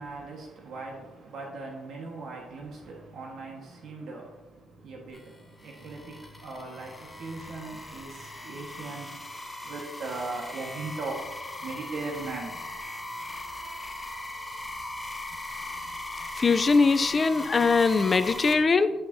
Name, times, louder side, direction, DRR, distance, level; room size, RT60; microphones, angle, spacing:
voice 1, 0.0-9.3 9.6-11.3 11.6-12.6, right 3 dB, 70° right, -1 dB, 1.5 m, -39 dB
sound 1, 5.1-18.5, left 1 dB, 10° left, 1.2 m, -39 dB
voice 2, 16.4-18.9, left 4 dB, 35° left, 11 dB, 0.5 m, -22 dB
11.0 x 5.7 x 2.8 m, 1.1 s
cardioid pair, 90°, 0 cm